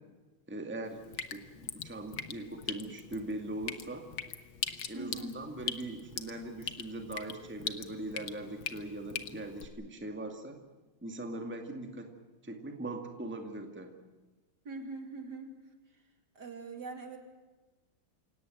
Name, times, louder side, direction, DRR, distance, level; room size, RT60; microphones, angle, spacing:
voice 1, 0.5-4.1 4.9-10.6 11.0-12.1 12.4-13.9, right 1 dB, 5° right, 4 dB, 2.0 m, -41 dB
Drip, 0.8-9.7, left 8 dB, 70° left, 2.1 m, -42 dB
voice 2, 4.9-5.4 11.8-12.1 14.6-15.5 16.3-17.2, right 3 dB, 50° right, 5 dB, 3.2 m, -43 dB
28.0 x 17.5 x 7.8 m, 1.2 s
omnidirectional pair, 2.3 m